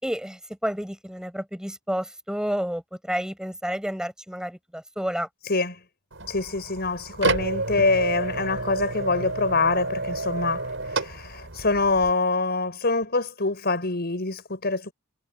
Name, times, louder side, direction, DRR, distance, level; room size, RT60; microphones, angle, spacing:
voice 1, 0.0-5.3, equal, 5° right, 5.2 m, -30 dB
voice 2, 5.5-5.8 6.3-10.7 10.9-14.9, left 3 dB, 55° left, 6.2 m, -25 dB
sound 1, 6.1-12.1, right 2 dB, 70° right, 7.8 m, -30 dB
head